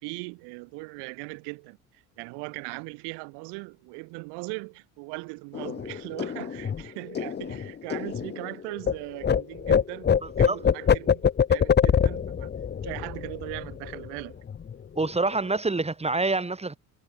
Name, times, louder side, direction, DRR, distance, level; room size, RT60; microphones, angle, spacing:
voice 1, 0.0-12.5 12.8-14.4, right 30 dB, 70° right, 3.2 m, -39 dB
sound 1, 5.5-8.9 9.2-14.2 14.5-14.7 15.0-15.6, left 7 dB, 25° left, 0.8 m, -25 dB
voice 2, 15.0-16.8, right 3 dB, 15° right, 2.8 m, -26 dB
hypercardioid pair, 60°, 42 cm